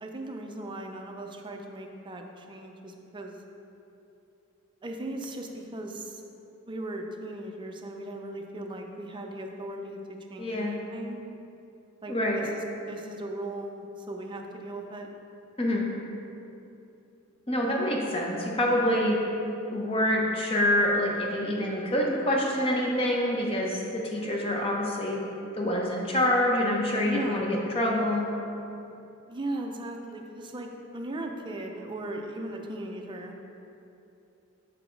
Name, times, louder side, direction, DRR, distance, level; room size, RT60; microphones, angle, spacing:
voice 1, 0.0-3.4 4.8-6.2 6.7-11.2 12.0-15.1 27.0-27.4 29.3-33.3, right 1 dB, 25° right, 2 dB, 0.5 m, -38 dB
voice 2, 10.4-10.8 12.1-12.4 15.6-15.8 17.5-19.2 19.7-25.2 25.6-28.3, left 1 dB, 30° left, -1 dB, 0.8 m, -26 dB
6.1 x 4.1 x 4.5 m, 2.8 s
head